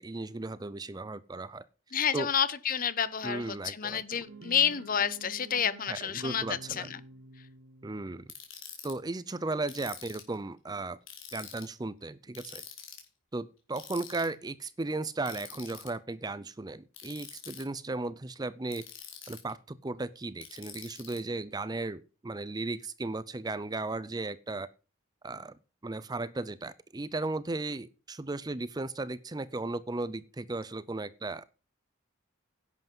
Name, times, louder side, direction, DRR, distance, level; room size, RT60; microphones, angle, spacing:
voice 1, 0.0-1.7 2.1-2.3 3.2-4.2 5.9-6.9 7.8-8.3 8.8-11.0 11.3-12.6 13.3-18.8 19.3-24.7 25.2-25.6 25.8-31.5, right 2 dB, 20° right, 0.5 m, -36 dB
voice 2, 1.9-7.0, left 8 dB, 45° left, 0.8 m, -30 dB
sound 1, 4.2-8.2, right 2 dB, 75° right, 1.1 m, -49 dB
Ratchet pawl, 8.3-8.9 9.7-10.3 11.1-11.7 12.3-13.0 13.8-14.3 15.3-15.9 16.9-17.6 18.7-19.5 20.4-21.2, left 9 dB, 70° left, 3.6 m, -46 dB
11.0 x 8.0 x 5.4 m
head